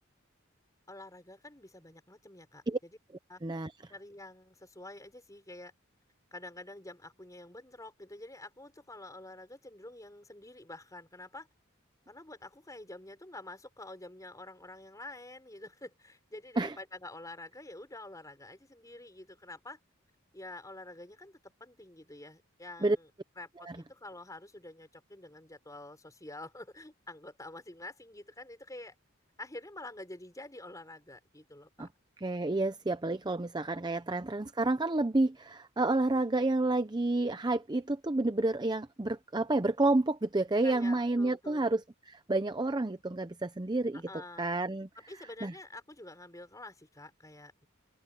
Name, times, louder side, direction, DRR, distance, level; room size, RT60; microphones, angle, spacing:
voice 1, 0.9-3.0 3.3-3.4 3.9-5.7 6.3-11.5 12.1-19.8 20.3-23.1 23.4-28.9 29.4-31.9 40.5-41.8 43.9-44.5 44.9-47.7, left 2 dB, 15° left, 5.1 m, -48 dB
voice 2, 32.2-41.8 42.1-44.0 44.4-44.9 45.4-45.5, right 2 dB, 20° right, 0.6 m, -29 dB
open air
head